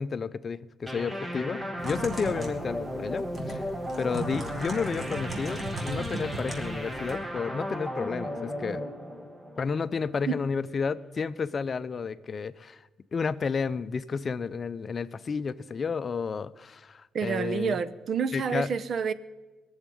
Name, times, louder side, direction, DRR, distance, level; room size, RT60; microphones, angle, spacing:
voice 1, 0.0-3.7 4.0-8.8 9.6-17.8 18.3-18.8, left 5 dB, 40° left, 15 dB, 0.6 m, -31 dB
sound 1, 0.9-10.2, equal, 10° right, 1.8 m, -35 dB
Typing, 1.8-7.2, right 2 dB, 30° right, 3.4 m, -37 dB
voice 2, 17.1-19.1, right 6 dB, 55° right, 16 dB, 0.8 m, -28 dB
19.5 x 7.3 x 10.0 m, 1.2 s
cardioid pair, 90°, 0 cm